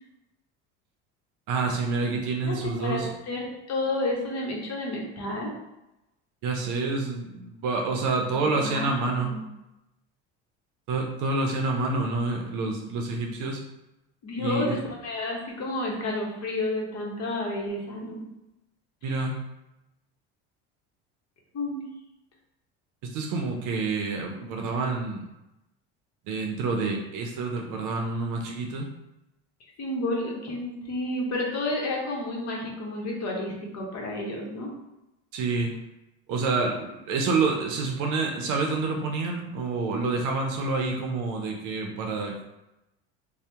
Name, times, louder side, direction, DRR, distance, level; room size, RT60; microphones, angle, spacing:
voice 1, 1.5-3.1 6.4-9.3 10.9-13.6 14.4-14.8 19.0-19.4 23.1-25.2 26.3-28.9 35.3-35.8 36.3-42.4, right 3 dB, 60° right, 1 dB, 0.6 m, -28 dB
voice 2, 2.4-5.5 8.2-9.4 14.2-18.2 19.0-19.2 21.5-21.9 29.8-34.7, left 2 dB, 45° left, -1 dB, 0.9 m, -31 dB
2.7 x 2.1 x 3.3 m, 0.93 s
supercardioid pair, 85°, 35 cm